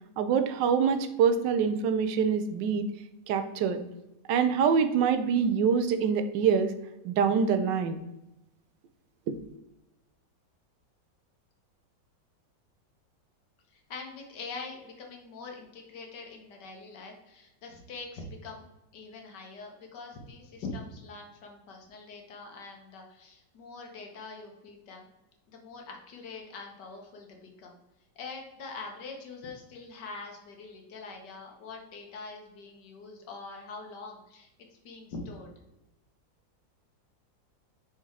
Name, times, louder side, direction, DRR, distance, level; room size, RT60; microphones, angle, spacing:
voice 1, 0.2-2.9 3.3-3.8 4.3-6.7 7.0-8.0 9.3-9.4, right 6 dB, 75° right, 9 dB, 1.2 m, -25 dB
voice 2, 13.7-18.6 18.9-25.1 25.5-27.8 28.1-34.5 34.8-35.5, left 3 dB, 65° left, 2 dB, 1.7 m, -43 dB
6.2 x 4.2 x 3.7 m, 0.93 s
omnidirectional pair, 2.0 m